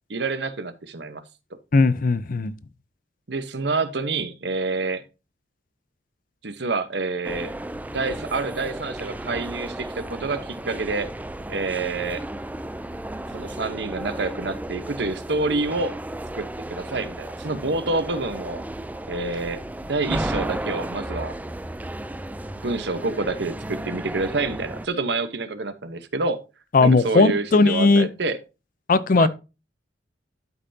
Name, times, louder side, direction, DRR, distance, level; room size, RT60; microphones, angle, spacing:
voice 1, 0.1-1.2 3.3-5.0 6.4-7.5 7.9-11.1 11.5-12.2 13.3-15.9 16.3-18.6 19.1-19.6 19.9-21.3 22.6-26.4 26.8-28.4 29.1-29.3, right 3 dB, 70° right, 1.0 m, -27 dB
voice 2, 1.7-2.5 26.7-28.1 28.9-29.3, left 3 dB, 50° left, 0.6 m, -17 dB
sound 1, 7.2-24.9, right 1 dB, 10° right, 0.4 m, -34 dB
12.0 x 5.6 x 2.8 m
head